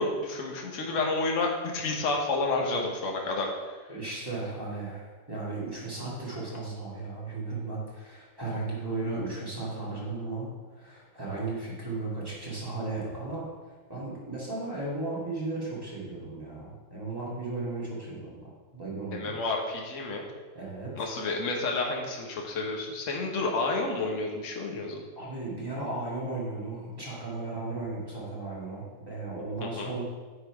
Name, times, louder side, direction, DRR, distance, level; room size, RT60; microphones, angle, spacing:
voice 1, 0.0-3.7 19.1-20.2 21.0-25.0 29.6-29.9, left 3 dB, 45° left, 0 dB, 1.3 m, -30 dB
voice 2, 3.9-13.5 13.9-19.4 20.5-21.1 25.2-30.0, right 3 dB, 10° right, -7 dB, 2.0 m, -35 dB
9.4 x 4.1 x 4.7 m, 1.4 s
omnidirectional pair, 2.1 m